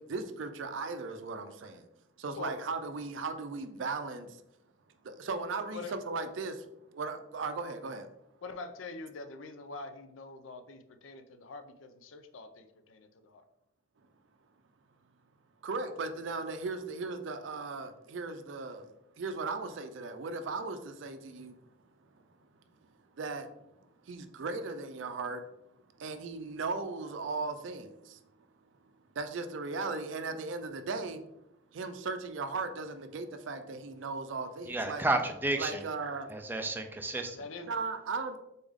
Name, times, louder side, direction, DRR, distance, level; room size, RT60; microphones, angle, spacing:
voice 1, 0.0-1.9 2.2-4.4 5.0-6.7 6.9-8.1 15.6-18.9 19.2-21.5 23.2-23.5 24.0-25.4 26.0-28.2 29.2-31.2 31.7-35.0 35.6-36.4 37.7-38.4, right 4 dB, 70° right, 8 dB, 0.4 m, -37 dB
voice 2, 8.4-13.4 37.3-37.7, left 3 dB, 85° left, 8 dB, 0.5 m, -44 dB
voice 3, 34.7-35.8 36.3-37.4, right 2 dB, 10° right, 5 dB, 0.4 m, -31 dB
4.0 x 3.5 x 3.5 m, 0.85 s
head